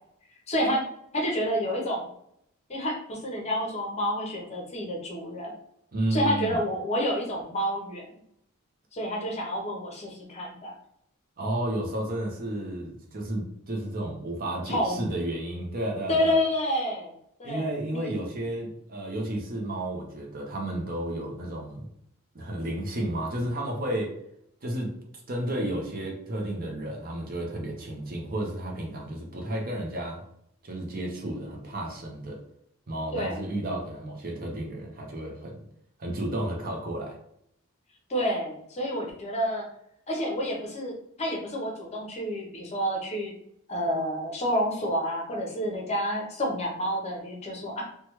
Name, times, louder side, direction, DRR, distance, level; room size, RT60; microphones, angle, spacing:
voice 1, 0.5-0.8 1.1-2.0 2.7-5.5 6.1-8.1 8.9-10.7 14.7-15.1 16.1-17.1 17.4-18.1 33.1-33.4 38.1-39.6 40.1-43.3 43.7-47.8, equal, 30° left, -1 dB, 0.7 m, -29 dB
voice 2, 5.9-6.6 11.4-16.4 17.4-21.9 22.3-24.1 24.6-24.9 25.3-30.2 30.6-32.4 32.9-35.6 36.0-37.2, right 1 dB, 40° right, 0 dB, 0.6 m, -32 dB
3.1 x 2.2 x 3.0 m, 0.72 s
head